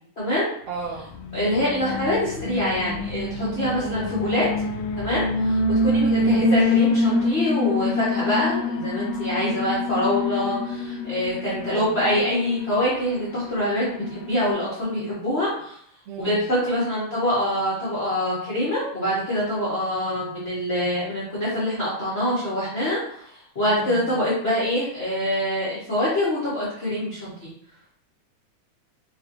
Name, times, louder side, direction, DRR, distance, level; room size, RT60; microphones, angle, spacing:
voice 1, 0.2-0.5 1.3-4.5 5.0-15.8 16.2-27.5, left 1 dB, 65° left, -9 dB, 0.6 m, -25 dB
voice 2, 0.7-1.1 3.8-4.2 6.1-6.4 11.4-12.0 16.1-16.4 23.7-24.1, right 5 dB, 65° right, -4 dB, 1.8 m, -34 dB
Alarm, 1.1-14.5, left 2 dB, 80° left, 1.6 m, -26 dB
6.0 x 2.7 x 2.7 m, 0.67 s
omnidirectional pair, 3.5 m